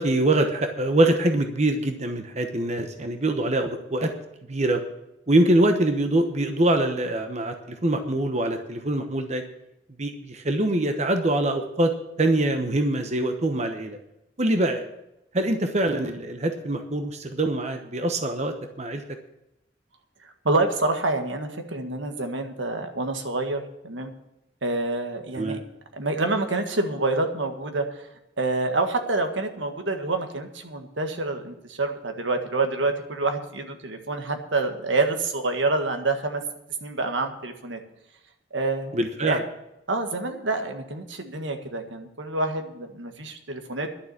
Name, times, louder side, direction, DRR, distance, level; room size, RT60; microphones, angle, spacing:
voice 1, 0.0-4.1 4.5-4.8 5.3-9.4 10.0-11.9 12.2-14.0 14.4-14.8 15.3-19.0 25.4-25.6 38.9-39.4, right 1 dB, 35° right, 6 dB, 1.0 m, -24 dB
voice 2, 20.4-24.1 24.6-25.6 25.9-28.0 28.4-36.4 36.8-37.8 38.5-39.4 39.9-43.9, right 2 dB, 85° right, 6 dB, 1.7 m, -27 dB
11.5 x 6.9 x 9.6 m, 0.86 s
head